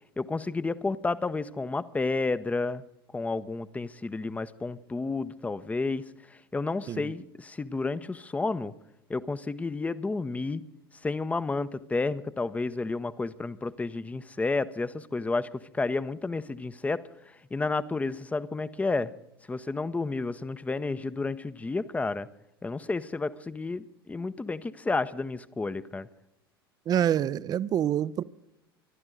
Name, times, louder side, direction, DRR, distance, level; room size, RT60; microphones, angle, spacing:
voice 1, 0.2-2.8 3.1-6.0 6.5-8.7 9.1-10.6 11.0-15.5 15.7-17.0 17.5-19.1 19.5-22.3 22.6-26.1, left 3 dB, 10° left, 15 dB, 0.7 m, -31 dB
voice 2, 26.9-28.2, right 10 dB, 30° right, 19 dB, 0.6 m, -26 dB
25.0 x 12.0 x 3.9 m, 0.85 s
figure-of-eight pair, 75°, 13 cm